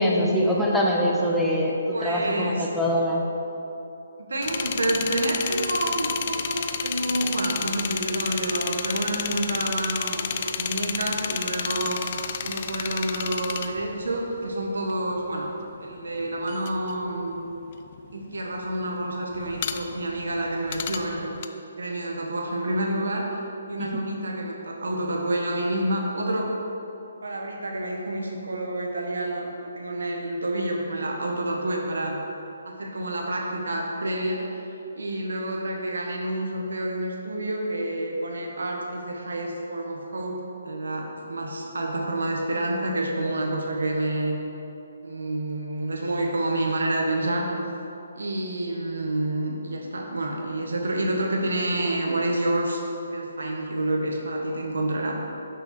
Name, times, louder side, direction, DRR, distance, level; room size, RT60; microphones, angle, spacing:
voice 1, 0.0-3.2 23.8-24.0, equal, ahead, -4 dB, 0.8 m, -23 dB
voice 2, 1.9-2.7 4.2-12.0 12.4-15.5 15.8-17.4 18.1-21.3 21.8-23.3 23.7-26.5 27.2-29.5 29.8-32.2 32.6-34.6 34.9-40.4 40.6-44.3 45.0-47.5 48.1-52.8 53.1-55.2, right 1 dB, 85° right, 0 dB, 1.4 m, -28 dB
sound 1, 4.4-15.2 15.4-21.4, left 7 dB, 40° left, 0.4 m, -31 dB
6.3 x 5.6 x 6.1 m, 2.9 s
hypercardioid pair, 160°, 0 cm